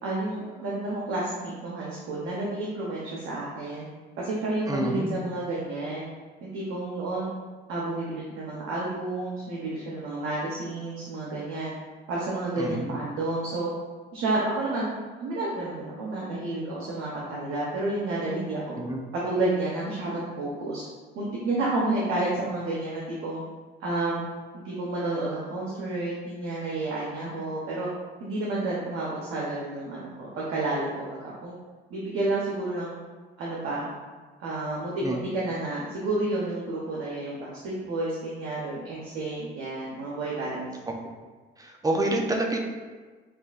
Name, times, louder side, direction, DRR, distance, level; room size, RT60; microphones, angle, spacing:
voice 1, 0.0-3.9 4.2-6.1 6.4-7.3 7.7-11.7 12.1-13.7 14.1-14.9 15.2-18.8 19.1-20.8 21.1-23.4 23.8-24.2 24.5-27.9 28.2-31.6 31.9-32.9 33.4-33.9 34.4-40.7, right 2 dB, 80° right, -5 dB, 0.9 m, -30 dB
voice 2, 4.7-5.1 12.6-13.0 18.8-19.0 35.0-35.2 41.6-42.6, right 2 dB, 15° right, 1 dB, 0.7 m, -27 dB
6.3 x 2.5 x 2.4 m, 1.4 s
cardioid pair, 80°, 21 cm